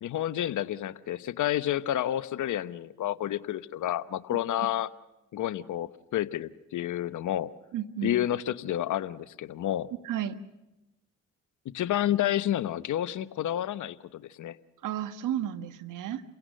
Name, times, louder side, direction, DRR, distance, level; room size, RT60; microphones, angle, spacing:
voice 1, 0.0-4.9 5.3-7.5 8.0-9.9 11.6-14.6, left 12 dB, 70° left, 1.0 m, -30 dB
voice 2, 4.3-4.7 7.7-8.1 10.0-10.4 14.8-16.2, right 11 dB, 75° right, 1.5 m, -33 dB
29.0 x 17.0 x 6.6 m
supercardioid pair, 60°, 32 cm